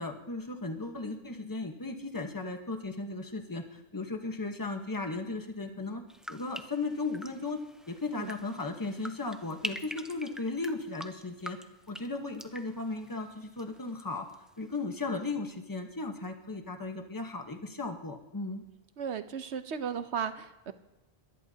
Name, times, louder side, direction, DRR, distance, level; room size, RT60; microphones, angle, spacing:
voice 1, 0.0-6.0 6.3-7.6 7.9-11.6 11.9-14.3 14.6-18.6, left 3 dB, 20° left, 4 dB, 1.2 m, -36 dB
sound 1, 6.1-14.0 14.3-14.8, equal, ahead, 0.5 m, -45 dB
voice 2, 19.0-20.7, right 7 dB, 85° right, 10 dB, 1.1 m, -35 dB
22.0 x 16.5 x 2.8 m, 0.95 s
omnidirectional pair, 1.1 m